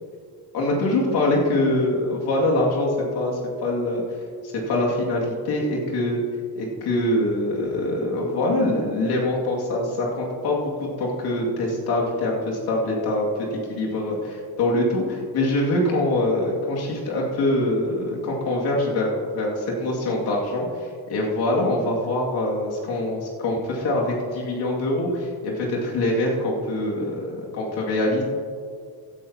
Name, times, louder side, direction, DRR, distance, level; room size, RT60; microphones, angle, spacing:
voice 1, 0.5-4.0 4.5-6.2 6.6-20.7 21.1-28.2, left 1 dB, 80° left, -3 dB, 2.4 m, -24 dB
16.0 x 10.5 x 2.9 m, 2.1 s
cardioid pair, 125°, 38 cm